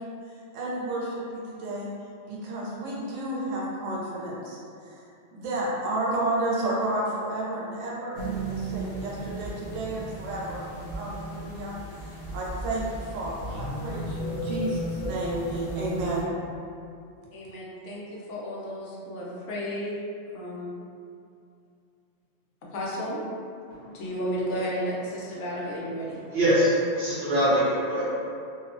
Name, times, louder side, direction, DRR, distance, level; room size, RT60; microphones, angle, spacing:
voice 1, 0.0-1.9 2.3-10.6 10.9-16.3, right 1 dB, 90° right, -5 dB, 1.0 m, -32 dB
sound 1, 8.1-16.2, right 1 dB, 55° left, 0.4 m, -34 dB
voice 2, 17.3-20.0 20.3-20.7 22.7-23.2 23.8-26.2, equal, 75° left, -5 dB, 0.9 m, -33 dB
voice 3, 26.3-28.2, equal, 60° right, -10 dB, 0.9 m, -23 dB
2.7 x 2.0 x 2.5 m, 2.5 s
omnidirectional pair, 1.3 m